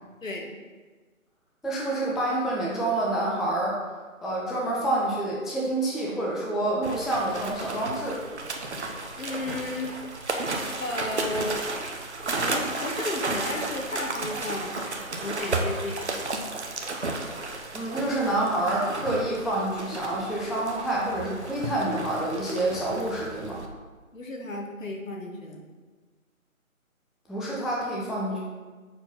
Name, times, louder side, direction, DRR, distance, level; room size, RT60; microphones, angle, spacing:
voice 1, 1.6-3.8 4.2-8.2 17.7-23.6 27.3-28.4, right 1 dB, ahead, -5 dB, 0.4 m, -27 dB
sound 1, 6.8-23.7, right 3 dB, 50° right, 0.7 m, -33 dB
voice 2, 9.2-10.0 10.8-11.6 12.4-14.8 15.2-16.0 24.1-25.7, left 2 dB, 65° left, 1 dB, 1.2 m, -33 dB
5.6 x 4.4 x 4.0 m, 1.4 s
figure-of-eight pair, 170°, 42 cm